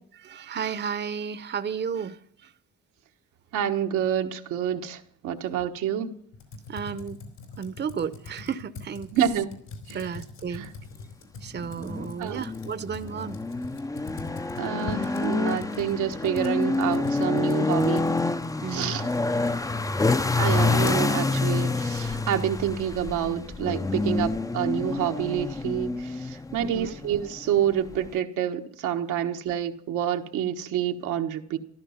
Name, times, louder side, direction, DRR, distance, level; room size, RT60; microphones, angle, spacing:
voice 1, 0.2-2.5 6.7-7.2 7.6-9.1 9.9-10.7 11.4-13.4 18.6-19.0 26.6-26.9, right 7 dB, 35° right, 13 dB, 0.8 m, -33 dB
voice 2, 3.5-6.1 9.1-9.5 9.9-10.1 10.5-10.7 12.2-12.4 14.6-18.1 18.7-19.1 20.3-31.6, right 9 dB, 90° right, 4 dB, 1.3 m, -28 dB
Computer keyboard, 6.3-22.8, left 4 dB, 85° left, 4.4 m, -44 dB
sound 1, 11.5-28.2, left 3 dB, 10° left, 0.5 m, -27 dB
14.5 x 12.5 x 5.7 m, 0.65 s
cardioid pair, 90°, 30 cm